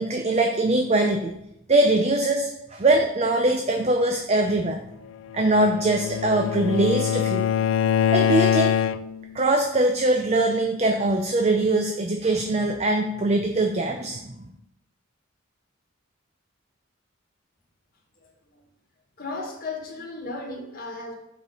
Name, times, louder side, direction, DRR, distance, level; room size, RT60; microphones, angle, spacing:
voice 1, 0.0-1.3 1.7-4.8 5.3-7.4 8.1-8.7 9.3-14.4, right 2 dB, 30° right, 4 dB, 0.6 m, -22 dB
Bowed string instrument, 5.4-9.3, left 9 dB, 70° left, 0.3 m, -23 dB
voice 2, 18.2-18.6 19.2-21.2, left 3 dB, 45° left, -1 dB, 2.0 m, -35 dB
6.7 x 5.2 x 5.7 m, 0.82 s
head